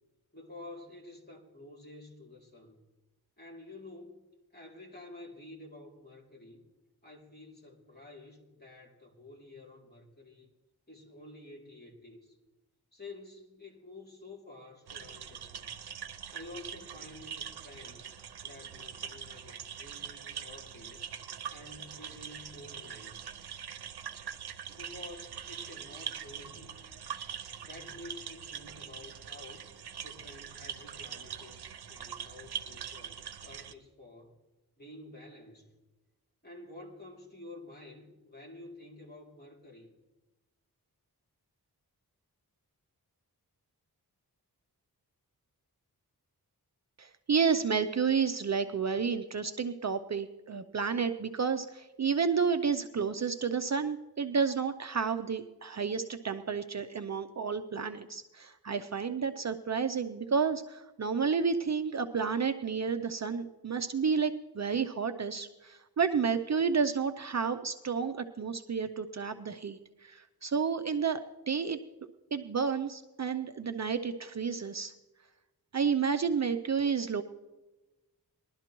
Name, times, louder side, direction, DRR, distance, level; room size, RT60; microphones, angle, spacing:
voice 1, 0.3-2.8 3.4-4.2 4.5-6.6 7.0-10.5 10.9-12.4 12.9-15.7 16.3-18.1 18.4-21.1 21.5-23.3 24.7-27.1 27.6-29.7 30.0-34.3 34.8-35.7 36.4-39.9, left 2 dB, 25° left, -1 dB, 2.8 m, -50 dB
sound 1, 14.9-33.7, right 8 dB, 85° right, 0.7 m, -43 dB
voice 2, 47.0-71.2 71.5-71.8 72.3-74.9 75.7-77.2, right 6 dB, 45° right, 8 dB, 0.5 m, -31 dB
20.5 x 12.0 x 3.0 m, 1.1 s
wide cardioid pair, 105°, 38 cm